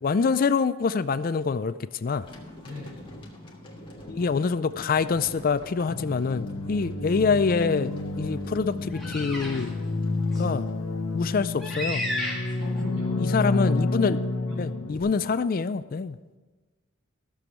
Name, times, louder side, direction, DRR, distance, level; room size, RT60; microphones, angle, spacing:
voice 1, 0.0-1.7 2.0-2.3 4.1-7.9 8.2-9.7 10.4-10.7 11.1-12.0 13.2-14.2 14.6-16.2, left 5 dB, 40° left, 14 dB, 0.4 m, -25 dB
sound 1, 2.1-11.5, left 1 dB, 25° left, 1.6 m, -45 dB
voice 2, 2.6-3.1 12.6-13.4 14.5-14.6, left 2 dB, 80° right, 0 dB, 3.7 m, -39 dB
sound 2, 5.9-15.0, left 2 dB, 75° left, 1.1 m, -30 dB
sound 3, 8.9-9.7 10.3-10.4 11.6-12.8, left 1 dB, ahead, 1.9 m, -32 dB
14.5 x 7.0 x 6.0 m, 1.3 s
head